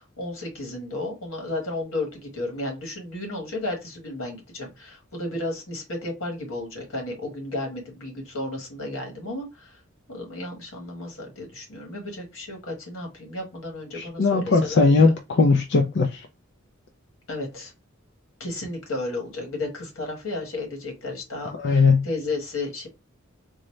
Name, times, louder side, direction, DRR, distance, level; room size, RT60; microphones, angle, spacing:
voice 1, 0.0-9.8 10.1-15.2 17.3-17.7 18.4-22.9, left 2 dB, 80° left, 1.5 m, -33 dB
voice 2, 13.9-16.3 21.6-22.1, left 4 dB, 55° left, 0.4 m, -19 dB
3.8 x 2.1 x 3.1 m
head